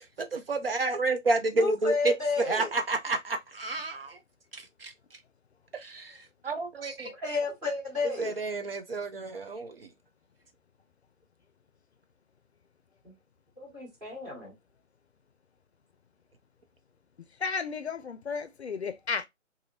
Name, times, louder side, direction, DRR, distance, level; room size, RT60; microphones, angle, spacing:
voice 1, 0.0-4.2 4.5-4.9 5.7-6.2 6.4-7.1 8.2-9.9, right 3 dB, 50° right, 0.5 m, -30 dB
voice 2, 1.5-2.7 7.1-8.4 13.0-13.1 13.6-14.5, left 4 dB, 10° right, 1.1 m, -31 dB
voice 3, 17.4-19.3, left 5 dB, 60° left, 0.5 m, -33 dB
2.6 x 2.5 x 2.7 m
figure-of-eight pair, 150°, 38 cm